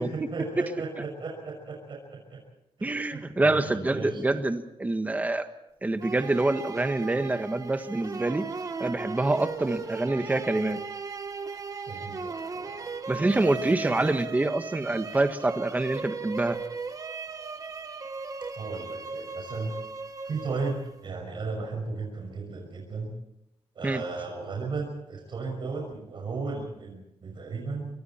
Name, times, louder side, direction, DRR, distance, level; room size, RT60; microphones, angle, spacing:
voice 1, 0.0-2.4 2.8-4.2 11.8-12.9 13.2-13.7 18.6-19.7 20.2-23.1 23.7-27.9, right 4 dB, 50° right, 0 dB, 6.0 m, -35 dB
voice 2, 2.8-5.5 5.8-8.5 8.8-10.8 13.1-16.6 23.8-24.0, right 2 dB, 15° right, 8 dB, 1.4 m, -26 dB
sound 1, 6.0-21.1, right 4 dB, 35° right, 1.4 m, -37 dB
29.5 x 24.5 x 4.4 m, 0.83 s
wide cardioid pair, 175°, 10 cm